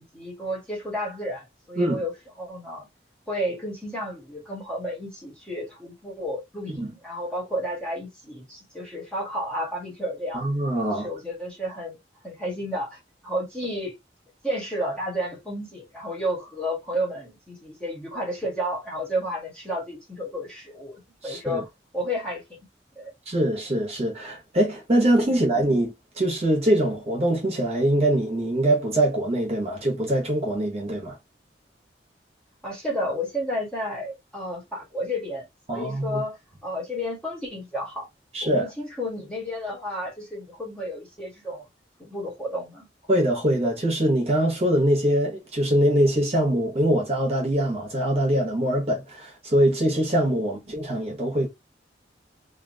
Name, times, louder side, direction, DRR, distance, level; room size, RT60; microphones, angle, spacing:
voice 1, 0.0-2.1 2.4-2.9 3.3-10.4 10.9-12.0 12.2-13.9 14.4-22.6 23.0-23.1 32.6-38.1 38.4-41.6 42.0-42.9 50.4-50.6, equal, 5° left, 1.3 m, -32 dB
voice 2, 10.3-11.1 21.2-21.6 23.3-31.2 35.7-36.2 38.3-38.7 43.1-51.5, right 1 dB, 35° right, 1.2 m, -23 dB
2.8 x 2.5 x 2.7 m
head